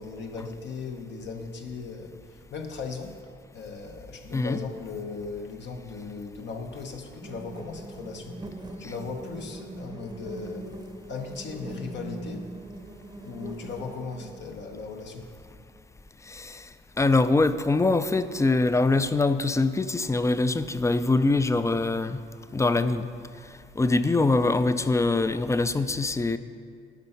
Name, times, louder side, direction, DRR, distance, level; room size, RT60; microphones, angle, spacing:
voice 1, 0.0-3.1 3.5-10.8 11.1-12.5 13.2-15.3, left 4 dB, 65° left, 3 dB, 0.9 m, -37 dB
sound 1, 7.2-14.6, right 2 dB, 20° right, 0.7 m, -41 dB
voice 2, 16.3-16.7 17.0-22.2 22.5-23.1 23.8-26.4, left 3 dB, 15° left, 12 dB, 0.4 m, -23 dB
10.5 x 5.5 x 5.4 m, 2.3 s
cardioid pair, 90°, 20 cm